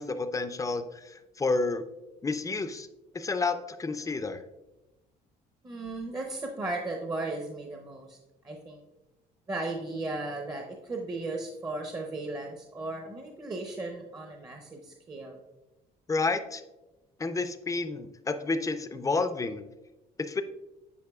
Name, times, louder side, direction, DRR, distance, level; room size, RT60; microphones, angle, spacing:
voice 1, 0.0-1.8 2.2-2.9 3.1-4.4 16.1-16.6 17.2-19.6 20.2-20.4, left 3 dB, 20° left, 10 dB, 0.5 m, -30 dB
voice 2, 5.6-8.2 8.4-8.8 9.5-15.4, right 2 dB, 25° right, 2 dB, 0.7 m, -36 dB
9.5 x 4.6 x 2.3 m, 1.0 s
cardioid pair, 110°, 17 cm